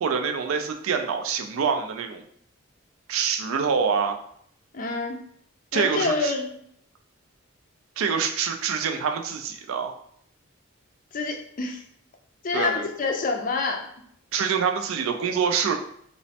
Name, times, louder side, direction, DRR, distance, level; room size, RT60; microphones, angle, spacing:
voice 1, 0.0-2.2 3.1-4.2 5.7-6.3 8.0-9.9 12.5-12.9 14.3-15.7, right 6 dB, 80° right, 5 dB, 0.4 m, -25 dB
voice 2, 4.7-5.2 5.7-6.5 11.1-11.8 12.4-13.9, left 3 dB, 40° left, 3 dB, 0.4 m, -27 dB
3.0 x 2.1 x 2.7 m, 0.66 s
head